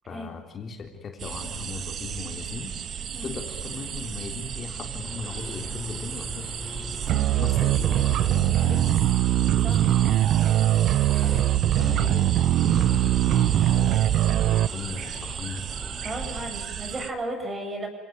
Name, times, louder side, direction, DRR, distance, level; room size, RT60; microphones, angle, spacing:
voice 1, 0.1-2.8 3.2-6.5 7.4-9.0 9.6-10.2 11.0-11.5 11.8-14.0 14.7-15.6, left 5 dB, 35° left, 3 dB, 3.7 m, -38 dB
sound 1, 1.2-17.1, right 8 dB, 40° right, 1.8 m, -35 dB
sound 2, 5.0-16.5, left 2 dB, 10° left, 4.8 m, -42 dB
sound 3, 7.1-14.7, right 13 dB, 55° right, 1.0 m, -21 dB
voice 2, 16.0-17.9, right 1 dB, 25° right, 4 dB, 7.9 m, -34 dB
29.0 x 18.5 x 9.5 m, 1.2 s
cardioid pair, 135°, 0 cm